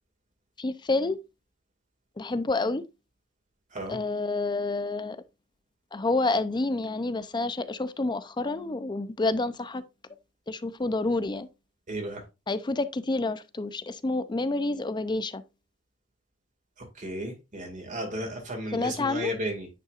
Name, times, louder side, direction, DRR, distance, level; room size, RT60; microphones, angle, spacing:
voice 1, 0.6-1.2 2.2-2.8 3.9-5.2 5.9-9.8 10.5-11.5 12.5-15.4 18.7-19.3, left 2 dB, 20° left, 0.5 m, -28 dB
voice 2, 11.9-12.2 16.8-19.7, equal, 40° right, 2.1 m, -34 dB
9.7 x 5.6 x 2.4 m
head